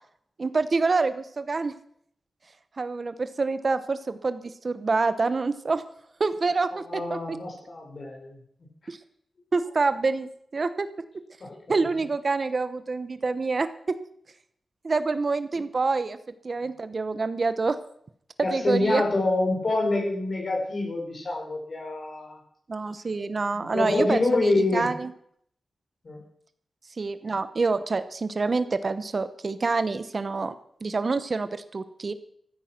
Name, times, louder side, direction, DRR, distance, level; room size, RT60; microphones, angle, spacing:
voice 1, 0.4-1.7 2.8-5.8 6.2-7.4 8.9-9.0 9.5-10.9 11.7-14.0 14.8-16.2 16.4-17.8 18.4-19.0 22.7-25.1 27.0-30.5 30.8-32.1, right 3 dB, 50° right, 12 dB, 1.1 m, -27 dB
voice 2, 6.7-8.4 11.4-11.8 18.4-22.4 23.5-24.9 26.0-26.2, left 2 dB, 55° left, 1 dB, 5.5 m, -26 dB
14.5 x 13.5 x 6.0 m, 0.66 s
cardioid pair, 75°, 0 cm